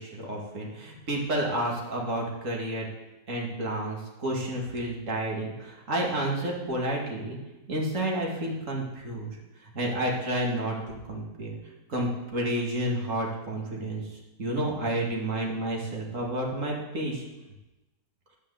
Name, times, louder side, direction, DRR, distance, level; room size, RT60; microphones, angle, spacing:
voice 1, 0.0-2.9 3.3-7.4 7.7-9.4 9.7-11.6 11.9-17.2, right 1 dB, 45° right, -1 dB, 2.6 m, -30 dB
12.5 x 5.3 x 8.3 m, 1.0 s
omnidirectional pair, 1.8 m